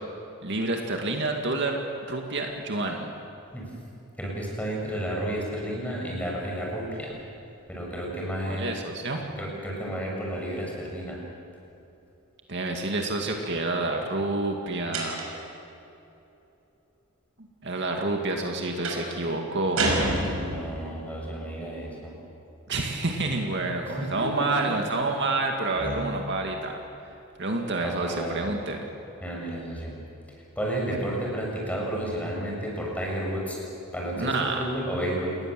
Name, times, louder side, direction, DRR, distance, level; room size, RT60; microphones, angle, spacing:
voice 1, 0.4-1.8 2.1-3.1 8.4-9.2 12.5-15.2 17.4-19.8 22.7-26.8 27.4-28.9 34.2-34.6, right 2 dB, 55° right, 2 dB, 2.2 m, -28 dB
voice 2, 4.2-7.1 7.7-8.7 9.4-11.2 20.4-22.1 23.8-24.8 25.8-26.0 27.8-28.4 29.2-30.0 30.6-33.6 33.9-35.4, right 1 dB, 5° left, -2 dB, 6.5 m, -32 dB
sound 1, 14.9-15.5 18.8-19.1 19.8-20.8, right 2 dB, 75° right, 6.0 m, -27 dB
28.5 x 20.0 x 7.8 m, 2.9 s
head